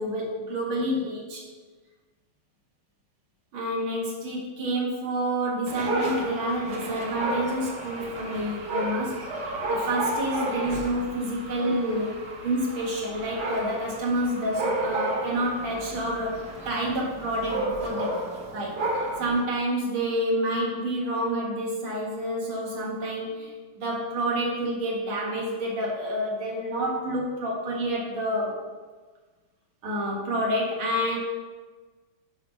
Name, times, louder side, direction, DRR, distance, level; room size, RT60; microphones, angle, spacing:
voice 1, 0.0-1.4 3.5-9.2 9.7-18.2 18.5-28.6 29.8-31.2, right 1 dB, 70° right, -2 dB, 2.3 m, -28 dB
Dog, 5.7-19.4, right 1 dB, 50° right, 1.6 m, -32 dB
7.1 x 3.6 x 6.1 m, 1.4 s
omnidirectional pair, 2.4 m